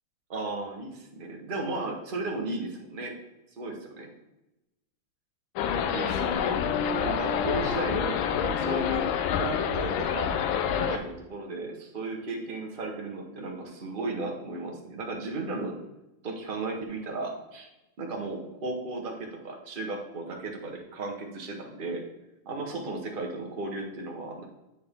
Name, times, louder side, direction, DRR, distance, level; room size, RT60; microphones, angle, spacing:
voice 1, 0.3-3.1 3.6-4.1 5.7-6.6 7.0-9.1 9.4-10.3 10.7-15.7 16.2-17.7 18.0-22.0 22.5-24.4, right 2 dB, 60° right, 0 dB, 0.5 m, -35 dB
sound 1, 5.6-11.0, left 7 dB, 75° left, 1.3 m, -27 dB
9.2 x 4.3 x 3.5 m, 0.94 s
omnidirectional pair, 2.4 m